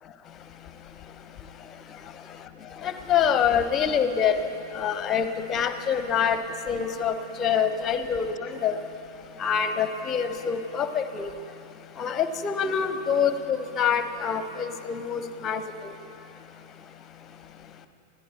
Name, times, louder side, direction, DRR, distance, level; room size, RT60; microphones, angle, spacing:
voice 1, 2.8-4.4 4.7-6.4 6.7-7.1 7.4-8.8 9.4-11.3 12.0-15.6, left 7 dB, 25° left, 10 dB, 0.9 m, -25 dB
27.5 x 16.5 x 2.9 m, 2.7 s
figure-of-eight pair, 90°, 0 cm